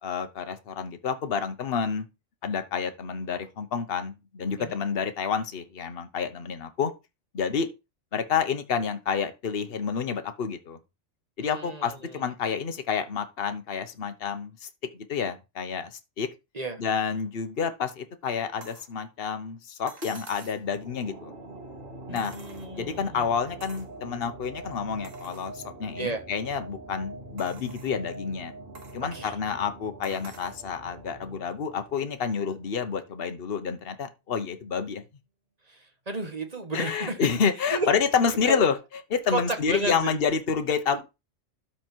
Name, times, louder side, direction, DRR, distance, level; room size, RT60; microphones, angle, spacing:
voice 1, 0.0-2.1 2.4-6.9 7.3-7.7 8.1-10.8 11.4-14.7 14.9-16.3 16.8-21.3 22.1-22.3 22.8-28.5 28.9-35.0 36.7-38.8 39.1-41.0, left 6 dB, 50° left, 1.3 m, -29 dB
voice 2, 11.4-12.3 16.5-16.8 22.1-23.2 26.0-26.2 29.0-29.3 35.7-37.2 37.7-37.9 38.4-38.7 39.3-40.2, right 2 dB, 30° right, 1.7 m, -33 dB
sound 1, 18.6-18.9 19.9-20.7 22.2-23.0 23.6-23.9 24.5-24.6 25.0-25.5 26.2-26.3 27.4-28.0 28.8-29.0 30.0-30.6 31.9-32.0, right 3 dB, 90° right, 1.9 m, -48 dB
sound 2, 20.6-33.1, right 2 dB, 50° right, 3.1 m, -44 dB
12.5 x 4.5 x 4.5 m
omnidirectional pair, 1.3 m